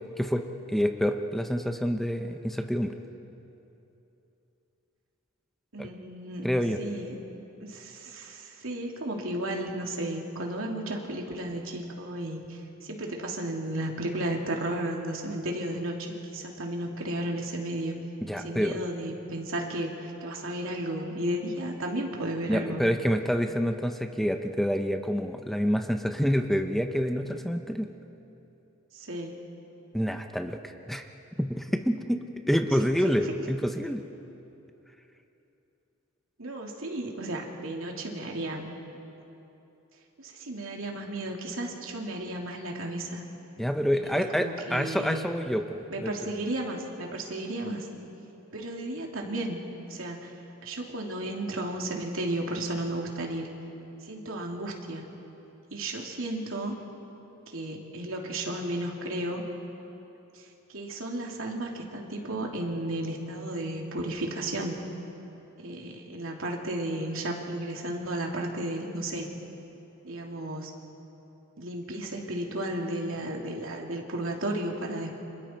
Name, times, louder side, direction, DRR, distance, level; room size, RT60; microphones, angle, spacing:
voice 1, 0.0-2.9 5.8-5.9 6.4-6.8 18.2-18.8 22.5-27.9 29.9-31.1 31.4-34.0 43.6-46.1, equal, ahead, 5 dB, 0.7 m, -27 dB
voice 2, 5.7-6.5 6.8-7.2 7.6-17.9 18.3-22.8 28.9-29.3 33.2-33.3 36.4-38.7 40.2-43.2 43.9-44.0 44.3-45.3 45.9-47.9 48.5-49.6 49.9-50.3 50.6-53.5 54.0-55.1 55.7-56.8 57.5-59.4 60.3-64.8 65.6-69.3 70.0-70.7 71.6-75.2, right 1 dB, 75° right, 0 dB, 2.9 m, -33 dB
30.0 x 27.0 x 4.5 m, 3.0 s
head